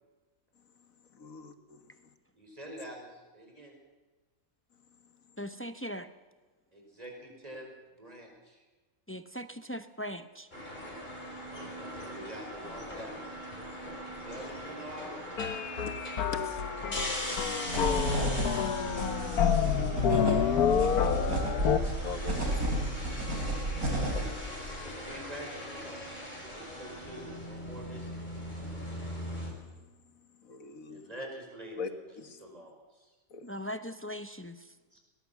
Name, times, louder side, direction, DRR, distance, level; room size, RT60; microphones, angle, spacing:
voice 1, 1.1-1.8 15.9-16.0 16.3-16.6 22.0-22.6 30.4-31.0 31.8-31.9 32.2-32.4 33.3-33.5, left 5 dB, 65° left, 9 dB, 1.9 m, -42 dB
voice 2, 2.3-3.8 6.7-7.7 8.0-8.6 11.2-11.6 11.9-13.2 14.2-15.1 16.2-18.3 18.8-21.1 24.8-28.2 30.9-33.1 34.9-35.0, equal, 25° right, 1 dB, 5.3 m, -47 dB
voice 3, 5.4-6.1 9.1-10.5 33.4-34.6, equal, 15° left, 10 dB, 0.5 m, -39 dB
sound 1, 10.5-29.5, equal, 30° left, 4.8 m, -40 dB
sound 2, 15.4-21.8, left 8 dB, 85° left, 1.5 m, -29 dB
sound 3, 17.7-24.3, right 1 dB, 75° right, 4.4 m, -32 dB
21.5 x 19.0 x 7.2 m, 1.3 s
omnidirectional pair, 1.5 m